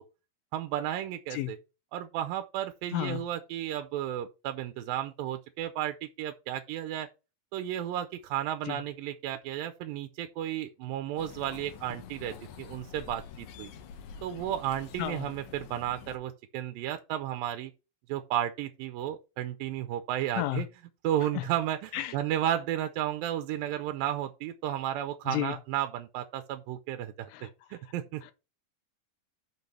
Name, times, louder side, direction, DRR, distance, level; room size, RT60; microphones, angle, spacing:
voice 1, 0.5-1.6 1.9-7.1 7.5-13.7 14.2-17.7 18.1-20.7 21.0-28.2, right 11 dB, 85° right, 2.4 m, -33 dB
voice 2, 1.3-1.5 2.9-3.2 8.7-8.8 15.0-15.3 20.4-20.6 21.3-21.5 21.9-22.1 25.3-25.6 27.3-27.5 28.2-28.3, left 16 dB, 85° left, 2.3 m, -32 dB
sound 1, 11.2-16.2, left 7 dB, 70° left, 2.0 m, -47 dB
6.1 x 5.4 x 6.0 m
omnidirectional pair, 4.1 m